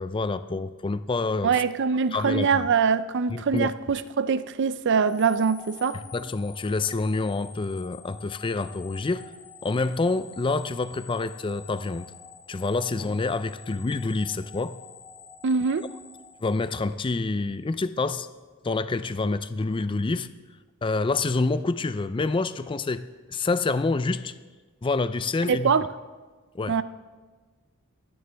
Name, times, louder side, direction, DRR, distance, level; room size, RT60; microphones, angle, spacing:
voice 1, 0.0-1.6 2.1-2.7 3.3-3.7 6.1-9.2 9.6-12.1 12.5-14.7 16.4-18.3 18.6-20.3 20.8-23.0 23.3-24.3 24.8-25.7 26.5-26.8, left 3 dB, 20° left, 13 dB, 0.4 m, -27 dB
voice 2, 1.4-6.0 15.4-15.9 25.5-25.8 26.7-26.8, right 6 dB, 55° right, 14 dB, 0.5 m, -23 dB
sound 1, 5.0-17.1, left 6 dB, 50° left, 2.1 m, -47 dB
27.5 x 9.5 x 3.4 m, 1.4 s
head